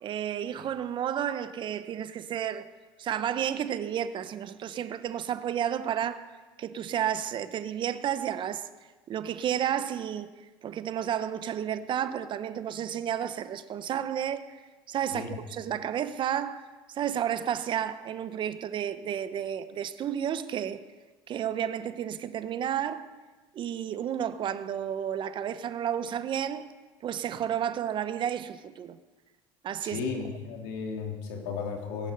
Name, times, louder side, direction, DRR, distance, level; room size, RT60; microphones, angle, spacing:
voice 1, 0.0-2.7 3.0-6.2 6.6-8.7 9.1-10.3 10.6-14.6 14.9-20.8 21.3-23.1 23.5-26.7 27.0-29.0 29.6-30.0, right 9 dB, 45° right, 0.9 m, -31 dB
voice 2, 29.8-32.1, left 5 dB, 80° left, 3.2 m, -34 dB
20.5 x 11.0 x 5.3 m
supercardioid pair, 85°, 11 cm